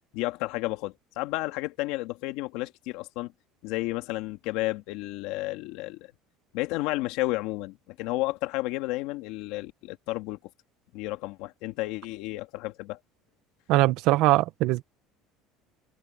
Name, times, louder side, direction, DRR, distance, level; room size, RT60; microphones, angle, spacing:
voice 1, 0.1-3.3 3.6-6.0 6.5-10.4 10.9-13.0, left 19 dB, 70° left, 2.2 m, -32 dB
voice 2, 13.7-14.8, right 17 dB, 60° right, 1.1 m, -21 dB
cardioid pair, 165°, 0 cm